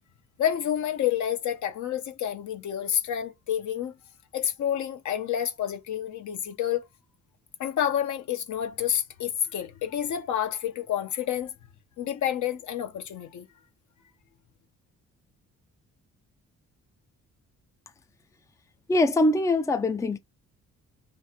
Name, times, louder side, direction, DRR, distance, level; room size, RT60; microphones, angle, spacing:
voice 1, 0.4-3.9 4.3-6.9 7.6-11.5 12.0-13.5, left 10 dB, 70° left, 1.1 m, -29 dB
voice 2, 18.9-20.2, left 2 dB, 10° left, 0.5 m, -23 dB
3.2 x 2.5 x 4.3 m
cardioid pair, 90°, 30 cm